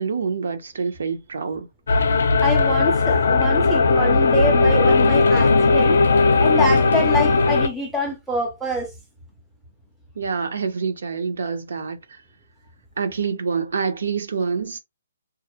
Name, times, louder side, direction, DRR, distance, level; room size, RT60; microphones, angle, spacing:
voice 1, 0.0-1.7 10.2-12.2 13.0-14.8, right 5 dB, 65° right, 0.6 m, -26 dB
sound 1, 1.9-7.7, left 3 dB, 60° left, 0.5 m, -17 dB
voice 2, 2.4-6.0 6.4-8.9, left 1 dB, ahead, 0.4 m, -25 dB
2.3 x 2.0 x 2.7 m
hypercardioid pair, 175°, 0 cm